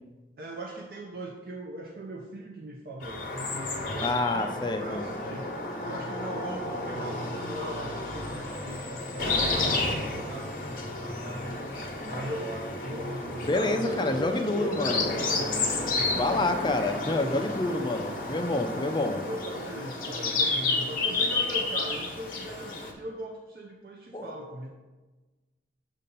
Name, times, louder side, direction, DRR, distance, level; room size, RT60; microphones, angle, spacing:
voice 1, 0.4-11.7 12.1-16.7 17.2-17.8 18.7-18.9 19.2-24.7, right 1 dB, 55° right, 1 dB, 0.5 m, -40 dB
sound 1, 3.0-22.9, left 3 dB, 50° left, 0.9 m, -31 dB
voice 2, 4.0-5.0 13.4-15.1 16.1-19.2 24.1-24.3, left 2 dB, 25° left, 5 dB, 0.4 m, -28 dB
7.4 x 2.8 x 5.3 m, 1.2 s
head